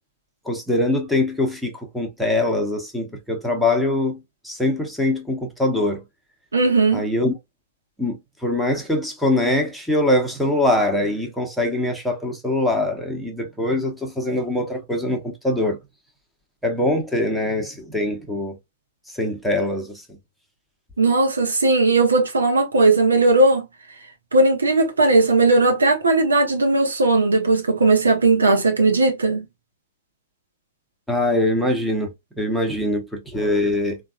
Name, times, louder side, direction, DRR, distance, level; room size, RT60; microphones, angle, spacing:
voice 1, 0.4-4.2 4.4-6.0 6.9-7.3 8.0-15.8 16.6-18.6 19.1-20.0 31.1-34.0, left 1 dB, ahead, 0.9 m, -23 dB
voice 2, 6.5-7.0 21.0-23.7 24.3-29.4, right 2 dB, 80° right, 0.8 m, -17 dB
3.3 x 2.3 x 2.3 m
figure-of-eight pair, 105°, 0 cm